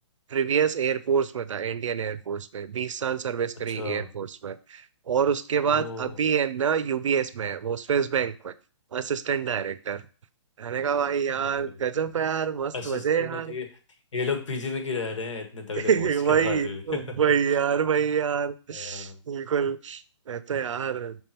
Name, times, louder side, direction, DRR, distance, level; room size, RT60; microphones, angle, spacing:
voice 1, 0.3-8.5 8.9-10.0 10.6-13.6 15.8-21.2, right 7 dB, 90° right, 15 dB, 0.6 m, -27 dB
voice 2, 3.7-4.1 5.6-6.2 11.5-11.8 12.7-13.7 14.1-17.3 18.7-19.2, left 4 dB, 80° left, 6 dB, 1.6 m, -33 dB
5.9 x 3.6 x 4.3 m, 0.36 s
hypercardioid pair, 175°, 16 cm